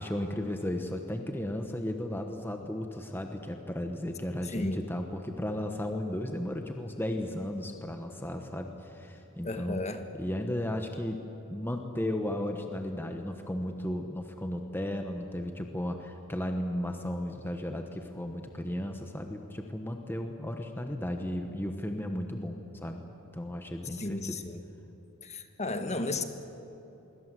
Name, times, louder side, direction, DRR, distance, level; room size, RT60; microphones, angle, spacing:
voice 1, 0.0-9.8 10.2-11.2 11.5-23.0 23.3-24.4, left 1 dB, 10° left, 4 dB, 1.2 m, -35 dB
voice 2, 9.4-10.0 23.9-24.6 25.2-26.2, left 2 dB, 30° left, 7 dB, 1.5 m, -34 dB
25.0 x 23.5 x 7.8 m, 3.0 s
head